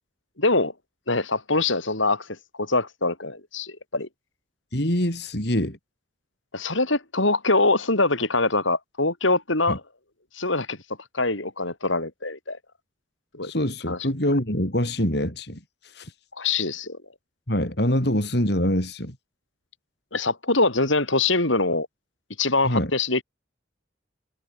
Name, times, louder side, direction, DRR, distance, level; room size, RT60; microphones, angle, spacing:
voice 1, 0.4-0.7 1.1-2.3 2.6-4.1 6.5-9.8 10.3-10.8 11.1-12.6 13.3-13.5 13.9-14.0 16.4-17.0 20.1-21.9 22.4-23.2, left 3 dB, 80° left, 7.8 m, -23 dB
voice 2, 4.7-5.8 9.7-9.8 13.4-15.6 15.9-16.1 17.5-19.1 22.6-22.9, left 1 dB, 55° left, 5.3 m, -24 dB
head